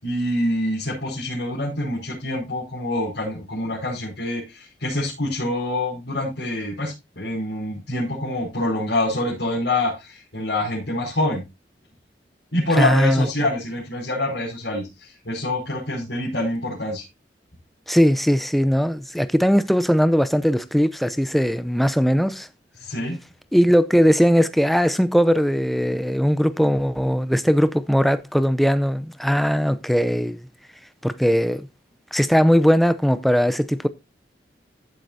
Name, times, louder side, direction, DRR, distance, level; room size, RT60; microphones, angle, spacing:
voice 1, 0.0-11.4 12.5-17.0 22.8-23.2, left 1 dB, 75° left, 5.5 m, -26 dB
voice 2, 12.8-13.3 17.9-22.5 23.5-30.5 31.0-31.7 32.1-33.9, equal, ahead, 0.6 m, -19 dB
15.0 x 7.7 x 2.7 m
head